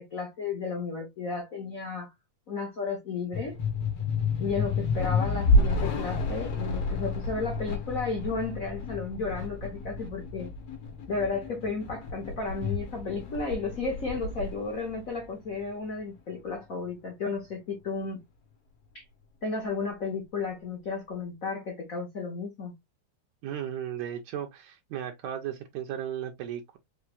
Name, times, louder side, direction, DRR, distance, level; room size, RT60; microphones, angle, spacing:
voice 1, 0.0-2.1 2.5-3.6 4.4-10.5 11.1-18.2 18.9-19.0 19.4-22.7, left 4 dB, 80° left, 0.7 m, -33 dB
sound 1, 3.3-15.8, left 2 dB, 60° left, 2.5 m, -30 dB
voice 2, 23.4-26.8, right 10 dB, 75° right, 1.9 m, -35 dB
5.7 x 3.3 x 2.4 m
omnidirectional pair, 3.4 m